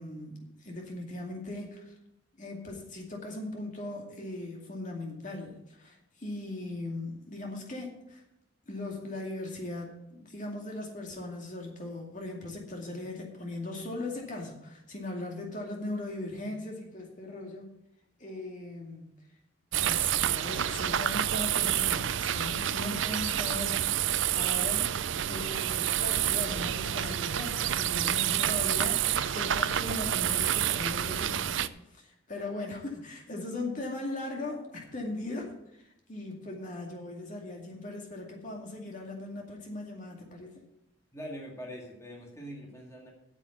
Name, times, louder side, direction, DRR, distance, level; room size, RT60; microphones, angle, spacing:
voice 1, 0.0-1.9 2.4-8.2 8.7-17.7 18.2-19.1 19.8-24.9 25.2-31.6 31.9-35.5 36.1-40.6, left 2 dB, 35° left, 0 dB, 2.4 m, -39 dB
sound 1, 19.7-31.7, right 10 dB, 65° right, 0.4 m, -28 dB
voice 2, 41.1-43.1, equal, 15° left, -1 dB, 2.1 m, -43 dB
8.9 x 7.4 x 8.3 m, 0.85 s
head